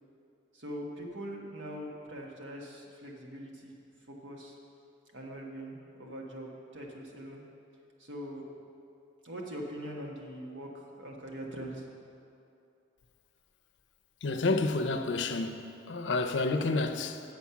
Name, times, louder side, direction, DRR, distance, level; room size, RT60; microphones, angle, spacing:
voice 1, 0.5-3.8 4.1-4.5 5.1-7.4 8.0-8.5 9.2-11.8, equal, 75° right, 1.4 m, -42 dB
voice 2, 14.2-17.2, left 3 dB, 70° left, 0.5 m, -30 dB
7.9 x 7.2 x 5.8 m
head